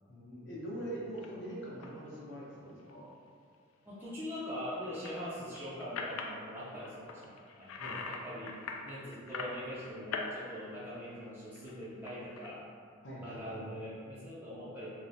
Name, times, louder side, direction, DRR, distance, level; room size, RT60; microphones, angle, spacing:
voice 1, 0.1-3.1 7.8-8.0 13.0-13.7, right 1 dB, 60° left, -6 dB, 0.7 m, -43 dB
sound 1, 1.1-1.3 1.8-2.1 2.5-2.9 4.8-6.4 6.8-8.2 8.5-10.3 10.6-12.5, left 4 dB, 75° left, 0.3 m, -42 dB
voice 2, 3.8-8.5 8.8-12.6 13.2-14.9, equal, 10° right, -11 dB, 0.4 m, -42 dB
3.1 x 2.0 x 2.5 m, 2.3 s
head